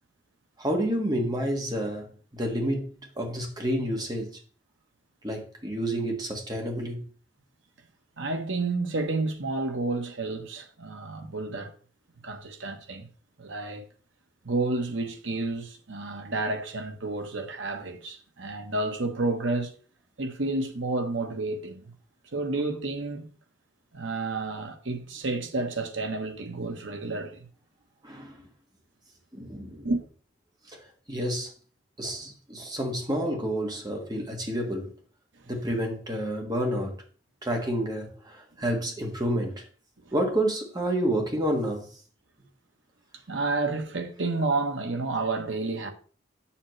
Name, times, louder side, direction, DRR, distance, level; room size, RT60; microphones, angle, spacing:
voice 1, 0.6-2.1 2.3-4.3 5.2-7.0 28.0-28.4 29.3-29.9 30.7-31.5 32.0-34.9 35.5-37.0 37.4-39.6 40.1-41.8, right 1 dB, 20° right, 1.7 m, -29 dB
voice 2, 8.2-11.7 12.2-13.1 13.4-13.8 14.4-19.7 20.2-21.9 22.3-23.3 23.9-27.5 29.8-30.0 40.0-40.1 43.3-45.9, right 3 dB, 70° right, 1.1 m, -30 dB
7.4 x 7.1 x 3.2 m
head